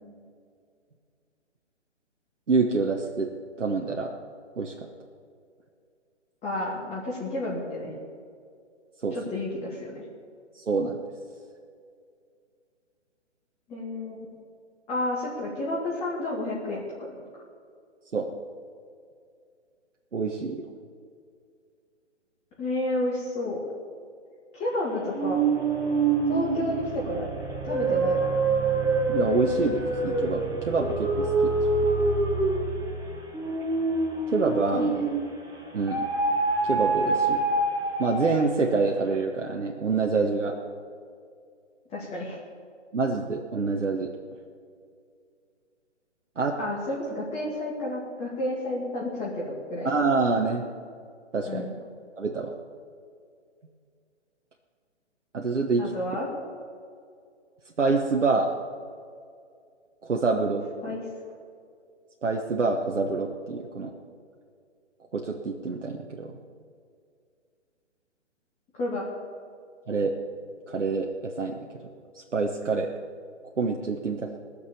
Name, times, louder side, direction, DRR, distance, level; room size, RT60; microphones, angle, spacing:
voice 1, 2.5-3.3 3.6-4.1 4.6-4.7 9.0-9.2 10.5-11.0 18.1-18.3 20.1-20.6 29.1-31.5 34.3-34.8 35.7-36.1 36.6-37.4 38.0-40.5 42.9-44.1 46.4-46.6 49.8-50.6 51.3-51.6 52.2-52.5 55.3-55.8 57.8-58.5 60.0-60.6 62.2-63.9 65.1-66.4 69.9-70.1 70.7-71.1 71.4-71.6 72.1-72.9 73.6-74.4, right 4 dB, 75° right, 1 dB, 1.3 m, -26 dB
voice 2, 6.4-7.9 9.1-10.0 13.7-14.2 14.9-17.1 17.3-17.4 22.6-23.6 24.5-25.4 26.3-27.3 27.6-28.3 34.7-35.1 41.9-42.4 46.6-49.9 51.5-51.8 55.8-56.3 60.8-61.0 68.7-69.1, left 1 dB, 20° left, -5 dB, 2.2 m, -31 dB
sound 1, 25.1-35.3 35.9-38.6, right 3 dB, 10° right, 1.5 m, -26 dB
20.0 x 6.7 x 7.0 m, 2.3 s
figure-of-eight pair, 135°, 36 cm